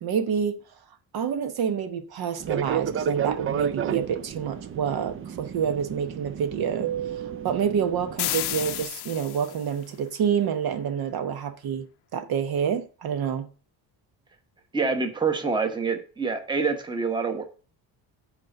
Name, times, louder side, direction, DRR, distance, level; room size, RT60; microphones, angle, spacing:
voice 1, 0.0-0.6 1.1-6.9 7.4-11.9 12.1-13.5, right 7 dB, 60° right, 1.0 m, -27 dB
Fixed-wing aircraft airplane, 2.4-8.8, right 8 dB, 30° right, 0.4 m, -32 dB
sound 1, 8.2-9.7, left 15 dB, 65° left, 0.6 m, -31 dB
voice 2, 14.7-17.4, right 4 dB, 10° right, 1.0 m, -26 dB
8.3 x 4.5 x 6.5 m
cardioid pair, 160°, 42 cm